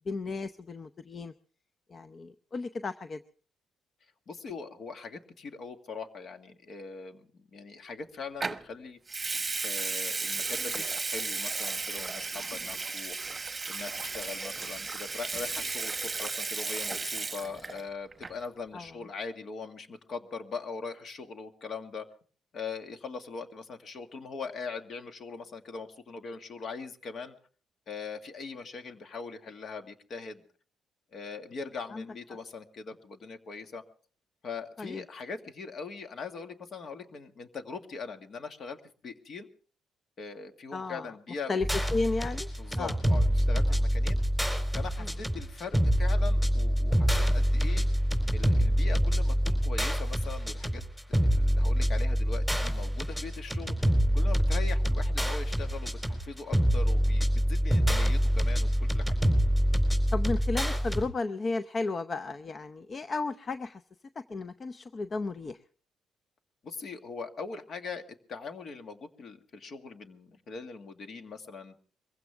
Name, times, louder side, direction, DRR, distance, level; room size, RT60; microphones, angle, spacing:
voice 1, 0.1-1.3 1.9-3.2 18.7-18.9 31.9-32.0 34.8-35.0 40.7-41.1 41.5-41.7 41.9-42.5 42.8-42.9 45.0-45.1 60.1-63.8 64.3-65.6, left 3 dB, 40° left, 11 dB, 0.7 m, -33 dB
voice 2, 4.3-9.0 9.6-13.2 13.6-22.1 22.5-27.4 27.9-30.4 31.1-33.8 34.4-38.8 39.0-39.5 40.2-41.9 42.6-44.2 44.7-47.9 48.3-50.8 51.2-53.9 54.1-59.2 66.6-68.0 68.3-71.8, left 4 dB, 55° left, 7 dB, 2.0 m, -41 dB
Water tap faucet / Sink (filling or washing) / Liquid, 8.4-8.6 9.1-17.8 18.1-18.5, right 4 dB, 25° right, 1.1 m, -34 dB
sound 1, 41.6-61.0, equal, 15° left, 4.3 m, -26 dB
22.5 x 16.0 x 3.5 m, 0.43 s
cardioid pair, 90°, 0 cm